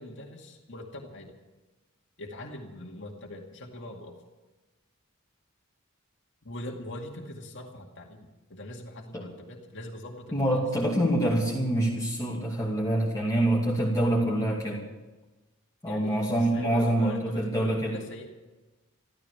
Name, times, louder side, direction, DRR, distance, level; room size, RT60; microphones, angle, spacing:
voice 1, 0.0-1.3 2.2-4.2 6.4-10.6 15.9-18.3, left 1 dB, 60° left, 0 dB, 2.2 m, -41 dB
voice 2, 10.3-14.8 15.8-17.9, right 1 dB, 15° left, -5 dB, 2.5 m, -26 dB
14.0 x 14.0 x 7.0 m, 1.2 s
head